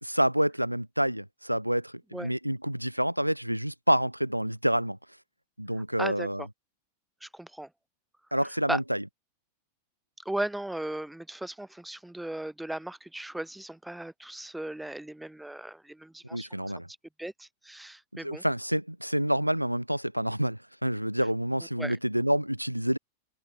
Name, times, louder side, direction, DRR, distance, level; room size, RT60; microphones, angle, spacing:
voice 1, 0.0-5.0 5.6-6.4 8.3-9.0 16.3-16.9 18.2-23.0, equal, 90° right, 0.4 m, -28 dB
voice 2, 6.0-6.5 7.2-7.7 8.7-8.8 10.2-16.6 17.2-18.4 21.8-22.0, right 1 dB, 5° right, 1.2 m, -36 dB
figure-of-eight pair, 90°, 0 cm